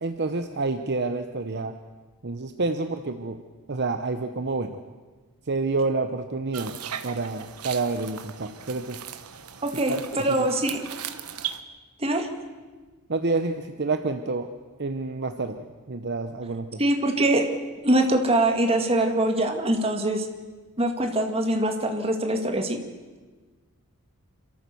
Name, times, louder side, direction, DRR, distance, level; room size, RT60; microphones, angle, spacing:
voice 1, 0.0-1.8 2.2-3.4 3.7-4.8 5.5-6.8 7.0-9.0 9.9-10.5 13.1-14.5 14.8-16.8, right 3 dB, 50° right, 7 dB, 0.8 m, -28 dB
sound 1, 6.5-11.6, right 9 dB, 85° right, 1.2 m, -38 dB
voice 2, 9.6-10.8 12.0-12.3 16.8-17.4 17.8-20.3 20.8-22.8, right 1 dB, 25° right, 4 dB, 2.0 m, -23 dB
28.0 x 13.5 x 7.0 m, 1.3 s
head